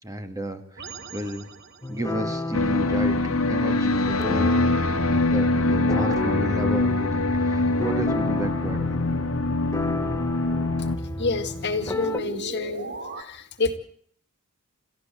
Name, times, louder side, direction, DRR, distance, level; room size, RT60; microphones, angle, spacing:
voice 1, 0.0-1.5 1.9-3.2 3.5-4.6 5.0-9.0, equal, 15° right, 7 dB, 2.2 m, -32 dB
sound 1, 0.8-2.1 4.8-7.5 10.7-13.2, right 2 dB, 50° right, 2.5 m, -39 dB
sound 2, 1.8-12.2, left 1 dB, 15° left, 0.9 m, -31 dB
sound 3, 2.5-11.0, left 2 dB, 70° left, 1.6 m, -24 dB
voice 2, 11.2-13.8, left 3 dB, 55° left, 9 dB, 2.0 m, -28 dB
28.5 x 14.5 x 7.7 m, 0.63 s
head